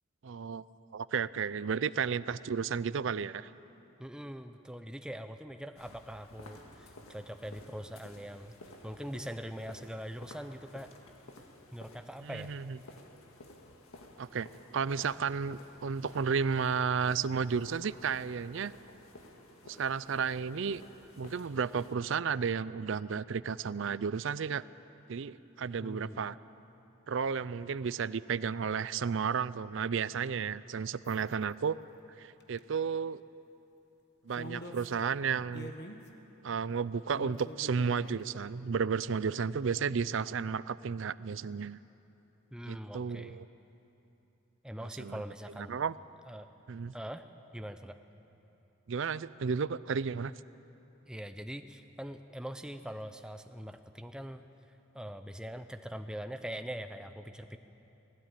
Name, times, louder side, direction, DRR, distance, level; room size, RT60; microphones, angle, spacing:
voice 1, 0.2-0.6 0.9-3.5 12.2-12.8 14.2-18.7 19.6-20.8 21.2-24.6 25.1-26.4 27.1-31.8 32.2-33.2 34.2-35.7 36.4-41.8 42.7-43.5 44.8-45.2 45.5-45.9 46.7-46.9 48.9-50.3, right 6 dB, 65° right, 18 dB, 0.4 m, -33 dB
voice 2, 4.0-8.5 8.8-10.9 11.7-12.5 25.8-26.3 42.5-43.4 44.6-45.8 46.3-46.5 46.9-47.2 47.5-48.0 51.1-54.4 54.9-57.6, equal, 5° right, 8 dB, 0.6 m, -42 dB
sound 1, 5.7-21.9, left 1 dB, 90° left, 1.9 m, -54 dB
sound 2, 31.1-31.3 32.4-32.6 34.4-34.9 35.5-36.1 37.1-38.3, left 1 dB, 55° left, 1.4 m, -45 dB
19.5 x 16.5 x 8.9 m, 3.0 s
head